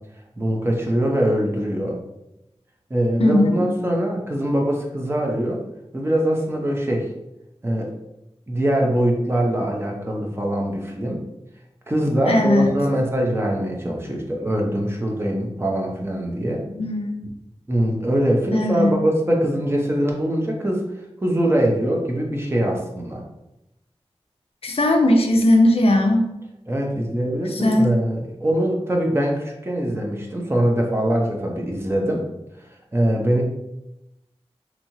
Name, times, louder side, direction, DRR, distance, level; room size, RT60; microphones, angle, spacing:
voice 1, 0.4-2.0 2.9-5.6 5.9-7.1 7.6-7.9 8.5-11.2 11.9-16.6 17.7-20.9 21.2-23.2 26.7-32.2 32.9-33.4, right 1 dB, 25° right, 0 dB, 0.7 m, -22 dB
voice 2, 3.2-3.7 12.3-12.8 16.7-17.1 18.5-19.0 24.6-26.3 27.5-27.9, left 1 dB, 70° left, 3 dB, 0.5 m, -18 dB
3.0 x 2.8 x 2.7 m, 0.89 s
wide cardioid pair, 65°, 10 cm